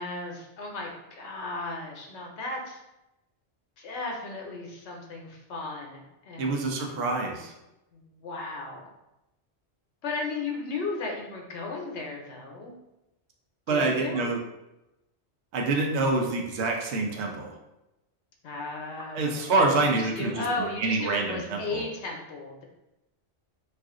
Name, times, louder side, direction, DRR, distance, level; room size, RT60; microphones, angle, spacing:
voice 1, 0.0-2.8 3.8-6.7 7.9-8.9 10.0-12.7 13.7-14.3 18.4-22.6, left 3 dB, 75° left, 0 dB, 0.9 m, -35 dB
voice 2, 6.4-7.5 13.7-14.4 15.5-17.5 19.1-21.8, right 3 dB, 75° right, 2 dB, 0.8 m, -26 dB
2.4 x 2.4 x 3.6 m, 0.93 s
omnidirectional pair, 1.2 m